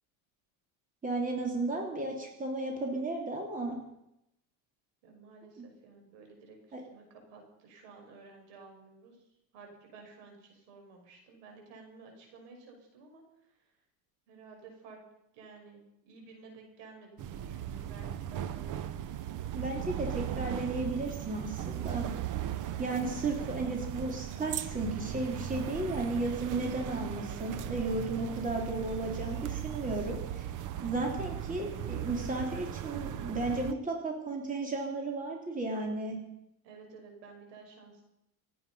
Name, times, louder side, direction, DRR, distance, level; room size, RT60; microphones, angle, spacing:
voice 1, 1.0-3.8 5.6-5.7 6.7-6.8 19.5-22.0 22.8-30.5 30.8-36.2, right 2 dB, 20° right, 1 dB, 3.2 m, -34 dB
voice 2, 5.0-9.2 9.5-13.2 14.3-15.0 15.3-18.9 36.6-38.0, right 4 dB, 70° right, 2 dB, 6.0 m, -53 dB
sound 1, 17.2-33.7, right 11 dB, 45° right, 0.9 m, -38 dB
27.5 x 9.4 x 5.6 m, 0.83 s
cardioid pair, 130°, 44 cm